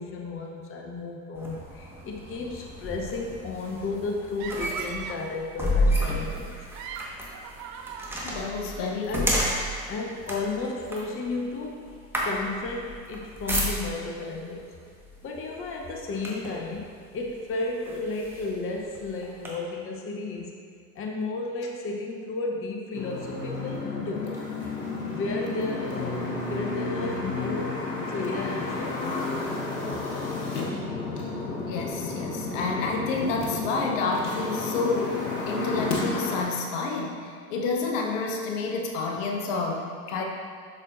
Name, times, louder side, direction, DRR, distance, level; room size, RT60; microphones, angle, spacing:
voice 1, 0.0-6.7 9.1-9.4 9.9-11.9 12.2-14.7 15.2-20.6 20.9-24.4 25.0-30.0, left 3 dB, 30° left, 0 dB, 0.8 m, -33 dB
sound 1, 1.4-14.2 15.0-15.2 15.6-16.7 17.3-17.4 17.8-19.5, equal, 5° right, 1.4 m, -31 dB
sound 2, 4.4-5.4 6.5-8.9, right 6 dB, 40° right, 0.5 m, -40 dB
voice 2, 8.2-9.3 31.7-40.2, left 3 dB, 60° left, 0 dB, 0.9 m, -29 dB
sound 3, 22.9-36.4, left 3 dB, 85° left, 1.2 m, -31 dB
7.6 x 6.0 x 2.5 m, 2.1 s
hypercardioid pair, 75°, 45 cm